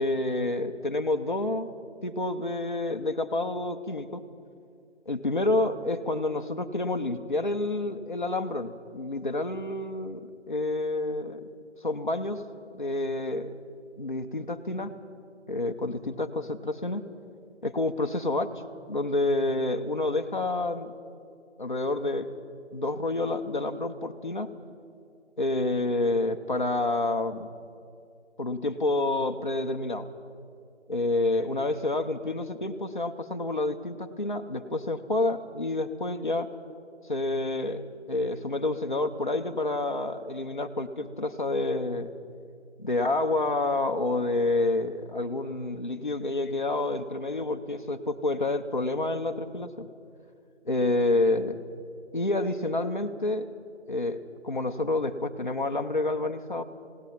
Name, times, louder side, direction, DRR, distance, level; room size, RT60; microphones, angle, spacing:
voice 1, 0.0-1.7 2.0-4.3 5.1-11.5 11.8-12.4 12.7-13.6 14.0-14.9 15.5-17.0 17.6-18.5 18.9-20.9 21.6-22.3 22.7-24.5 25.4-27.5 28.4-30.1 30.9-36.5 37.1-42.1 42.8-49.9 50.7-51.6 52.1-53.5 53.9-56.6, left 2 dB, 40° left, 4 dB, 0.9 m, -28 dB
29.5 x 17.5 x 5.8 m, 2.4 s
figure-of-eight pair, 180°, 36 cm